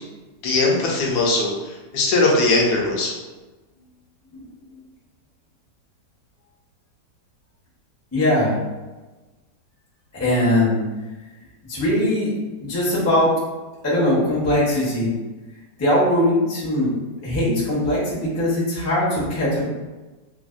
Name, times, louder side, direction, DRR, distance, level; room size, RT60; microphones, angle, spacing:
voice 1, 0.4-3.1, left 2 dB, 75° left, -3 dB, 1.1 m, -20 dB
voice 2, 8.1-8.6 10.1-10.8 11.7-12.3 12.6-13.3 13.8-15.1 15.8-16.9 17.2-19.6, left 1 dB, 25° left, -7 dB, 0.3 m, -20 dB
3.2 x 2.1 x 2.4 m, 1.2 s
omnidirectional pair, 1.9 m